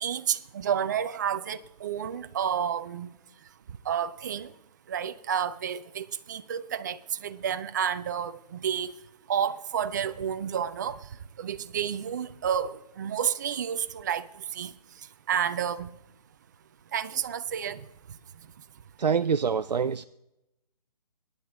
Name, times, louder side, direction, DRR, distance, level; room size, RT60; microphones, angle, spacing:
voice 1, 0.0-3.1 3.9-4.5 4.9-8.9 9.3-11.0 11.4-14.3 14.5-14.7 15.3-15.9 16.9-17.8, right 8 dB, 25° right, 0.4 m, -30 dB
voice 2, 19.0-20.0, right 6 dB, 80° right, 0.5 m, -25 dB
24.0 x 9.6 x 3.5 m
figure-of-eight pair, 145°, 21 cm